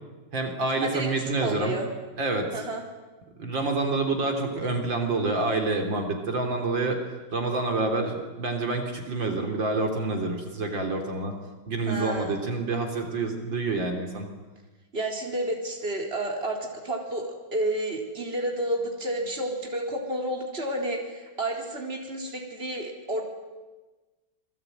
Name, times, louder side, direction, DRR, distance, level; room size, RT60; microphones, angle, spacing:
voice 1, 0.3-1.8 2.2-2.5 3.4-7.0 7.3-11.3 11.7-14.3, right 3 dB, 75° right, 4 dB, 3.8 m, -27 dB
voice 2, 1.4-1.9 2.5-2.8 11.9-12.4 14.9-23.2, right 1 dB, 30° right, 1 dB, 4.3 m, -30 dB
27.5 x 22.0 x 9.2 m, 1.2 s
omnidirectional pair, 2.1 m